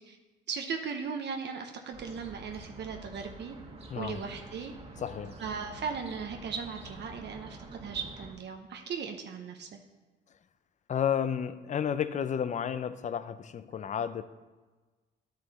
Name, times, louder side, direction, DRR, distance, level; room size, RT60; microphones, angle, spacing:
voice 1, 0.5-3.6 3.9-4.7 5.4-9.8, right 6 dB, 60° right, 0.9 m, -37 dB
east bank esplanade, 1.9-8.3, right 1 dB, 30° right, 1.4 m, -47 dB
voice 2, 3.9-4.2 5.0-5.4 10.9-14.2, left 8 dB, 40° left, 0.5 m, -32 dB
10.5 x 6.5 x 4.1 m
cardioid pair, 90°, 20 cm